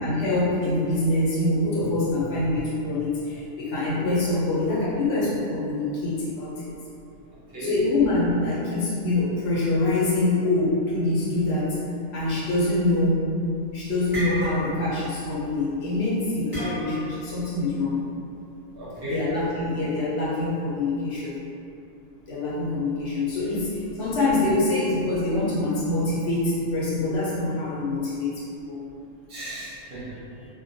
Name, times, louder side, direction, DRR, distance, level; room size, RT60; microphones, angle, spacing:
voice 1, 0.0-6.7 7.6-13.3 13.7-18.0 19.1-21.4 22.3-28.3 28.7-28.8, left 2 dB, 65° left, -7 dB, 0.8 m, -25 dB
voice 2, 1.8-2.2 2.5-2.6 7.5-7.7 18.8-19.2 23.4-23.6 29.3-30.4, equal, 60° right, -9 dB, 0.8 m, -36 dB
sound 1, 13.2-13.6 13.9-15.0 15.2-15.5 16.5-17.2, equal, 25° left, 0.5 m, -33 dB
2.2 x 2.1 x 2.5 m, 2.6 s
omnidirectional pair, 1.3 m